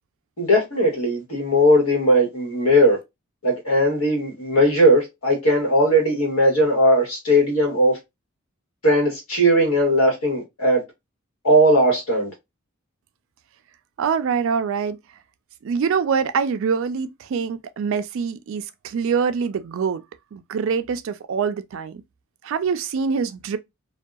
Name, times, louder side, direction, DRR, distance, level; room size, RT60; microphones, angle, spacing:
voice 1, 0.4-3.0 3.4-8.0 8.8-10.8 11.4-12.3, equal, 75° left, 1.3 m, -18 dB
voice 2, 14.0-15.0 15.6-20.0 20.3-22.0 22.4-23.6, right 6 dB, 65° right, 0.3 m, -24 dB
2.6 x 2.2 x 2.2 m
head